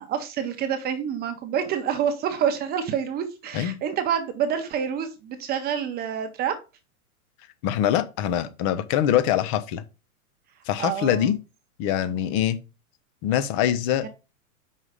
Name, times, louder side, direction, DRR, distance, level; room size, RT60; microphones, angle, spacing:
voice 1, 0.0-6.5 10.8-11.3 14.0-14.1, right 8 dB, 20° right, 0.9 m, -27 dB
voice 2, 7.6-9.8 10.7-11.4 11.8-12.6 13.2-14.1, left 10 dB, 25° left, 0.4 m, -23 dB
5.6 x 4.8 x 4.9 m
hypercardioid pair, 140°, 43 cm